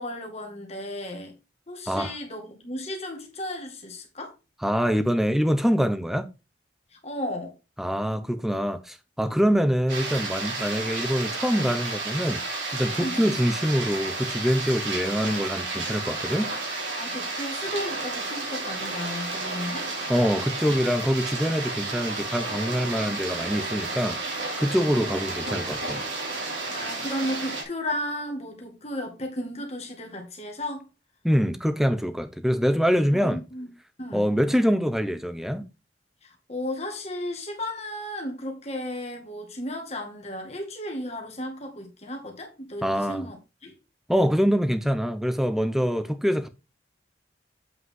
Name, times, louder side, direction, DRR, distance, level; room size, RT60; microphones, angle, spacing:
voice 1, 0.0-1.3 1.7-4.3 6.9-7.5 13.0-13.3 17.0-19.9 26.7-30.9 33.2-33.7 34.0-34.2 36.2-43.4 43.6-43.7, left 1 dB, 35° left, 2.1 m, -34 dB
voice 2, 4.6-6.3 7.8-12.4 12.7-16.5 20.1-26.0 31.2-33.4 34.1-35.7 42.8-43.3 44.1-46.5, equal, ahead, 0.7 m, -25 dB
sound 1, 9.9-27.6, right 3 dB, 85° right, 3.1 m, -32 dB
8.1 x 5.4 x 3.7 m
head